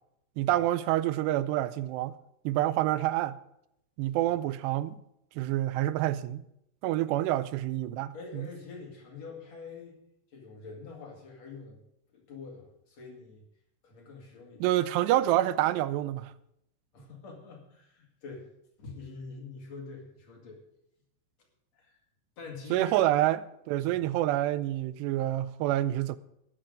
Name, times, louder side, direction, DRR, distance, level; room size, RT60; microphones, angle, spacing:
voice 1, 0.4-2.1 2.5-3.4 4.0-5.0 5.4-6.4 6.8-8.5 14.6-16.3 22.7-23.4 23.7-26.2, right 14 dB, 90° right, 2.8 m, -27 dB
voice 2, 8.1-10.0 10.3-11.8 12.1-13.4 13.8-14.7 16.9-18.5 18.8-20.6 21.7-22.0 22.4-23.0 23.8-24.0, left 4 dB, 45° left, 3.0 m, -45 dB
13.0 x 10.5 x 5.2 m
omnidirectional pair, 4.8 m